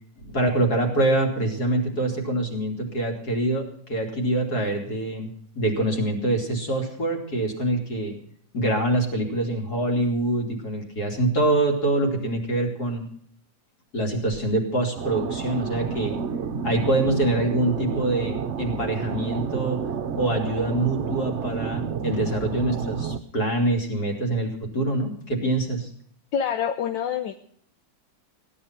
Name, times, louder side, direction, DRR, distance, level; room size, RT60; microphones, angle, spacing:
voice 1, 0.2-5.3 5.5-8.2 8.5-13.1 13.9-16.2 16.6-19.8 20.2-25.9, right 1 dB, 55° left, 2 dB, 3.6 m, -25 dB
sound 1, 15.0-23.2, right 6 dB, 50° right, 0.9 m, -30 dB
voice 2, 26.3-27.3, left 8 dB, 80° left, 8 dB, 1.5 m, -26 dB
17.0 x 11.0 x 5.9 m, 0.63 s
omnidirectional pair, 2.0 m